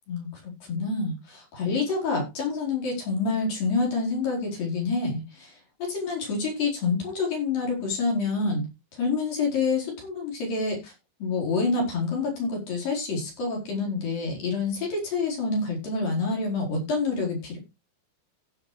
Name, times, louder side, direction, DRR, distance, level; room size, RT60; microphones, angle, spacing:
voice 1, 0.1-8.6 8.9-10.9 11.2-17.6, left 4 dB, 65° left, -1 dB, 6.1 m, -27 dB
15.5 x 7.2 x 3.2 m, 0.25 s
omnidirectional pair, 4.3 m